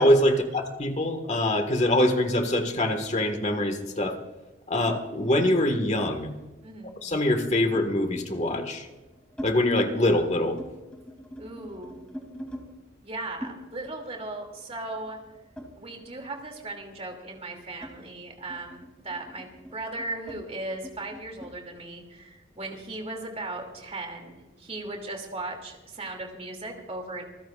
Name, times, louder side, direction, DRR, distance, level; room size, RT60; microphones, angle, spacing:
voice 1, 0.0-4.2 4.7-6.3 7.0-8.9 9.4-10.6, left 1 dB, 35° left, 6 dB, 1.7 m, -24 dB
sound 1, 5.8-6.4 7.7-8.0 8.7-9.5 9.9-10.2 10.5-12.7 13.4-16.3 16.6-21.6, equal, 5° left, 3.0 m, -44 dB
voice 2, 6.6-7.0 11.4-12.0 13.0-15.2 15.7-27.3, right 2 dB, 30° right, 2 dB, 2.7 m, -37 dB
26.5 x 15.5 x 2.5 m, 1.1 s
head